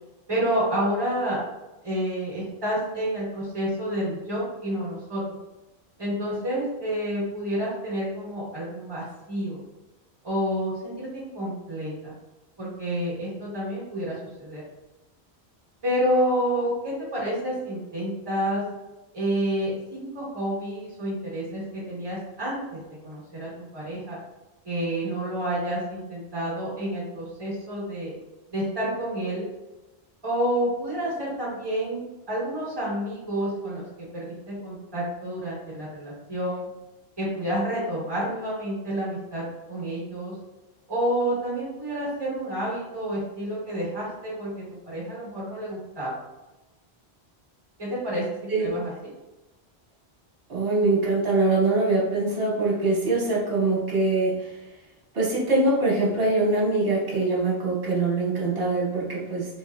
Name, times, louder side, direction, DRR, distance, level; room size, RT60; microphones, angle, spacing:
voice 1, 0.3-1.4 1.8-5.4 6.0-9.6 10.2-12.1 12.6-14.6 15.8-18.6 19.1-24.2 24.6-28.1 28.5-29.5 30.2-32.0 32.3-36.7 37.2-40.3 40.9-46.1 47.8-48.2 48.6-48.9, equal, 25° right, -7 dB, 1.3 m, -29 dB
voice 2, 50.5-54.3 55.1-59.5, right 2 dB, 65° right, -5 dB, 1.4 m, -23 dB
3.3 x 3.0 x 2.3 m, 1.0 s
omnidirectional pair, 1.1 m